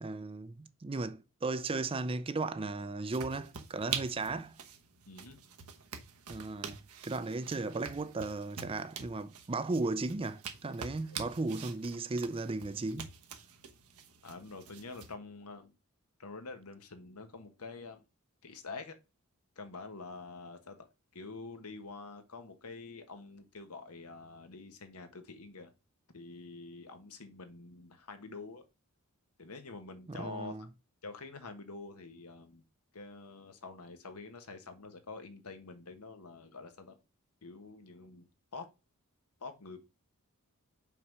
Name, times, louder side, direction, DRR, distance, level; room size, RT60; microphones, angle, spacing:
voice 1, 0.0-4.6 6.3-13.1 30.1-30.7, right 3 dB, 25° right, 0.5 m, -36 dB
sound 1, 3.1-15.1, right 7 dB, 80° right, 1.1 m, -45 dB
voice 2, 5.1-5.4 11.1-11.2 14.2-15.7 16.2-18.0 18.4-18.9 19.6-20.9 21.1-25.7 26.1-28.6 29.4-30.5 31.0-32.6 32.9-37.0 37.4-38.7 39.4-39.8, left 3 dB, 85° left, 1.3 m, -47 dB
5.8 x 4.7 x 5.4 m
head